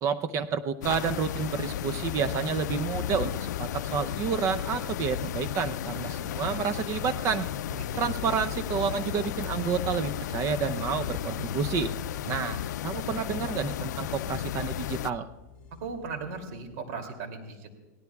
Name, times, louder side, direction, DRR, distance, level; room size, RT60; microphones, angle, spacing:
voice 1, 0.0-7.5 8.0-11.9 12.3-15.3, right 6 dB, 35° right, 11 dB, 0.7 m, -30 dB
sound 1, 0.8-15.1, left 11 dB, 85° left, 0.4 m, -33 dB
sound 2, 6.7-16.8, left 4 dB, 15° left, 5.4 m, -54 dB
voice 2, 7.7-8.2 15.8-17.7, right 4 dB, 60° right, 4 dB, 2.8 m, -38 dB
28.0 x 18.0 x 2.4 m, 1.1 s
supercardioid pair, 135°, 9 cm